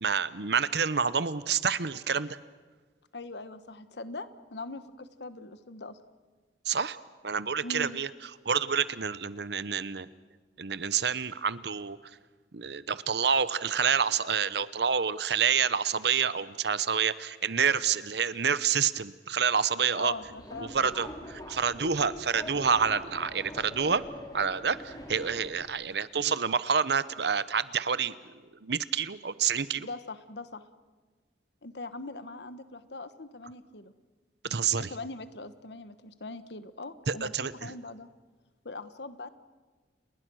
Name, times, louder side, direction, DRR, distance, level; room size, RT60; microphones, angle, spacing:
voice 1, 0.0-2.4 6.7-7.0 7.2-8.1 8.5-10.1 10.6-12.0 12.5-20.1 20.6-24.0 24.3-28.1 28.6-29.9 34.4-34.9 37.1-37.7, right 6 dB, 65° right, 16 dB, 0.9 m, -28 dB
voice 2, 3.1-6.0 7.6-8.0 20.0-21.0 29.7-30.6 31.6-33.9 34.8-38.1 38.6-39.3, left 2 dB, 70° left, 12 dB, 1.3 m, -41 dB
Subway metro underground, 20.0-25.7, left 1 dB, 20° left, 3.8 m, -44 dB
30.0 x 20.5 x 6.4 m, 1.4 s
head